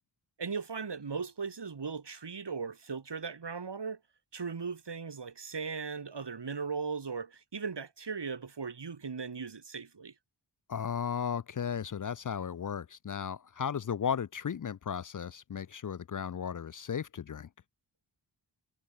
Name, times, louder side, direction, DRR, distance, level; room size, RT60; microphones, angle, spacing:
voice 1, 0.4-4.0 4.3-10.1, right 5 dB, 65° right, 3.8 m, -38 dB
voice 2, 10.7-17.5, left 7 dB, 45° left, 0.6 m, -35 dB
cardioid pair, 55°, 44 cm